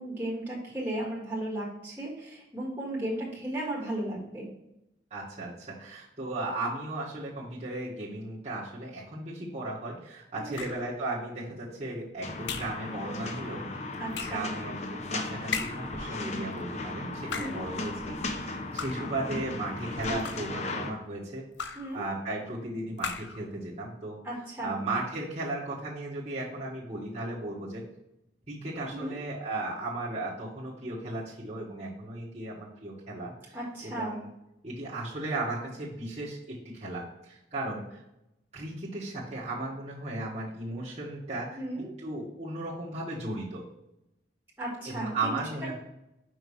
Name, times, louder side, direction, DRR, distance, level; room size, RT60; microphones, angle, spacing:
voice 1, 0.0-4.5 10.4-10.7 14.0-14.5 17.3-17.6 21.8-22.0 24.2-24.8 28.9-29.2 33.5-34.2 41.6-41.9 44.6-45.5, right 1 dB, 10° right, -5 dB, 1.7 m, -35 dB
voice 2, 5.1-13.9 14.2-18.2 18.4-21.4 21.7-24.2 24.6-27.9 28.5-34.3 34.6-38.0 38.5-41.6 42.0-43.6 44.8-45.7, right 2 dB, 35° right, -8 dB, 1.5 m, -36 dB
sound 1, 10.5-11.0 12.5-12.9 14.1-14.5 15.5-16.0 17.1-17.7 18.8-19.2 20.0-20.6 21.6-22.0 23.0-23.4, left 6 dB, 75° left, 0.6 m, -37 dB
sound 2, 12.2-20.9, left 2 dB, 35° left, 0.7 m, -36 dB
5.5 x 5.4 x 3.2 m, 0.87 s
head